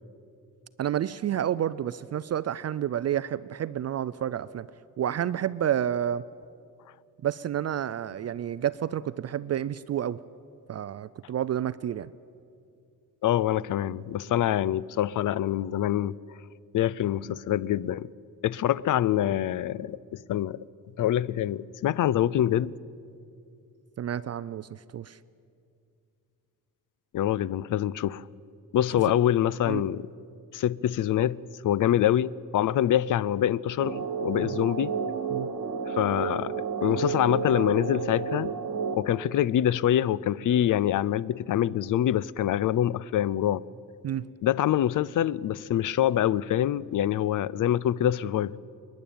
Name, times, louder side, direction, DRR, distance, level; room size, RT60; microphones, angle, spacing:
voice 1, 0.8-4.7 5.0-6.2 7.2-10.2 10.7-12.1 24.0-25.2 29.7-29.8 34.4-34.5 35.3-35.5 44.0-44.3, right 10 dB, 45° right, 0.4 m, -30 dB
voice 2, 13.2-16.2 16.7-18.1 18.4-20.6 21.0-22.7 27.1-28.2 28.7-30.1 30.5-31.4 31.6-34.9 35.9-36.5 36.8-38.5 39.0-43.6 44.4-48.5, left 11 dB, 60° left, 0.5 m, -25 dB
sound 1, 33.8-38.9, right 6 dB, 65° right, 1.9 m, -31 dB
29.0 x 10.5 x 8.7 m
cardioid pair, 120°, 37 cm